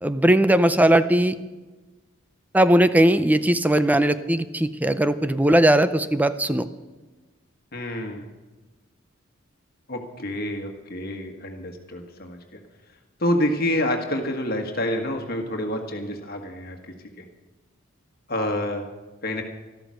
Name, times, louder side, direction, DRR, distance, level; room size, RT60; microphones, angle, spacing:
voice 1, 0.0-1.4 2.5-6.7, right 1 dB, 10° right, 12 dB, 0.5 m, -19 dB
voice 2, 7.7-8.2 9.9-12.6 13.2-16.8 17.2-17.3 18.3-18.8 19.2-19.4, left 1 dB, 45° left, 4 dB, 1.6 m, -27 dB
13.0 x 13.0 x 6.4 m, 1.2 s
head